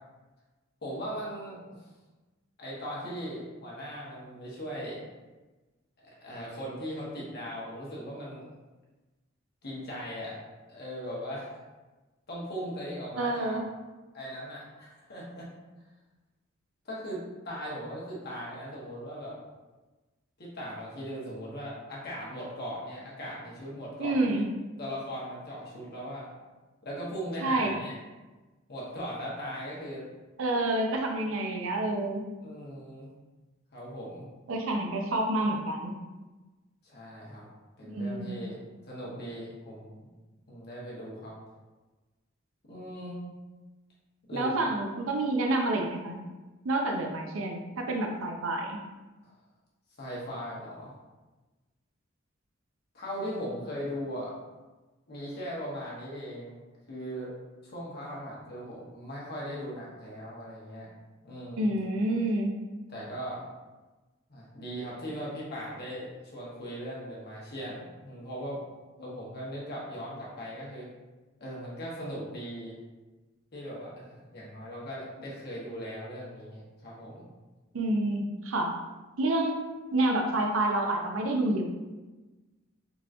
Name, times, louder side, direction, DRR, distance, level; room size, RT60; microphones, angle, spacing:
voice 1, 0.8-1.6 2.6-5.0 6.0-8.4 9.6-10.4 10.7-11.5 12.3-13.6 14.1-15.5 16.8-19.4 20.4-24.4 24.8-26.3 26.8-28.0 28.7-30.1 32.4-33.1 33.7-34.3 36.8-37.5 37.8-38.6 38.9-40.1 40.5-41.3 42.7-43.4 44.3-44.5 50.0-50.9 52.9-54.3 55.1-56.6 56.9-57.3 57.6-60.9 61.2-61.7 62.9-63.5 64.3-68.6 69.0-70.9 71.4-72.7 73.5-77.3, equal, 55° left, -5 dB, 1.0 m, -39 dB
voice 2, 13.2-13.6 24.0-24.5 27.4-27.8 30.4-32.2 34.5-36.0 37.8-38.4 44.3-46.2 46.6-48.8 61.6-62.5 77.7-78.7 79.2-79.6 79.9-81.6, right 2 dB, 80° right, 2 dB, 0.5 m, -28 dB
3.8 x 2.9 x 2.5 m, 1.2 s
head